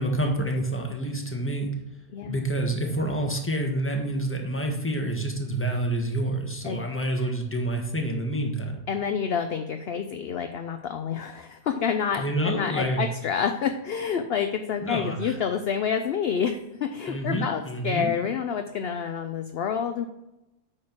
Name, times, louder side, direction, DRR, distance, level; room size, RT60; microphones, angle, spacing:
voice 1, 0.0-1.7 2.3-8.8 12.2-13.1 14.8-15.3 17.1-18.1, right 1 dB, 10° left, 2 dB, 1.3 m, -28 dB
voice 2, 8.9-20.1, left 7 dB, 60° left, 7 dB, 0.7 m, -28 dB
8.9 x 4.6 x 6.0 m, 0.92 s
omnidirectional pair, 1.5 m